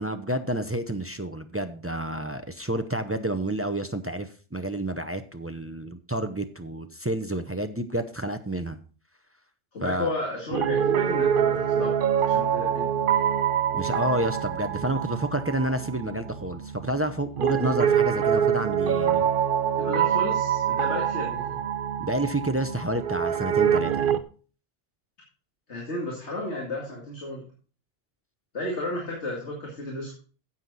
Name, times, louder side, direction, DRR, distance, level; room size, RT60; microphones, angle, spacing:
voice 1, 0.0-8.8 9.8-10.1 13.7-19.3 22.0-24.2, right 1 dB, 20° right, 9 dB, 0.4 m, -29 dB
voice 2, 9.7-12.0 12.3-12.9 19.8-21.6 25.7-27.5 28.5-30.1, left 1 dB, 70° left, -2 dB, 2.6 m, -33 dB
Piano, 10.5-24.2, right 9 dB, 55° right, 0.7 m, -25 dB
9.7 x 7.9 x 4.0 m, 0.39 s
omnidirectional pair, 1.2 m